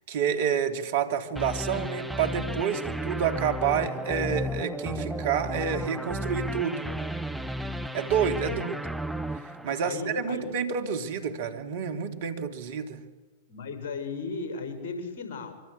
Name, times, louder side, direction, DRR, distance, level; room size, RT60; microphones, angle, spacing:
voice 1, 0.1-6.8 7.9-8.7 9.6-13.0, right 7 dB, 55° right, 7 dB, 2.8 m, -29 dB
sound 1, 1.4-10.4, equal, ahead, 1.1 m, -33 dB
voice 2, 8.5-8.8 9.8-10.4 13.5-15.5, left 4 dB, 45° left, 7 dB, 6.6 m, -36 dB
25.0 x 24.5 x 8.4 m, 1.2 s
figure-of-eight pair, 100°, 0 cm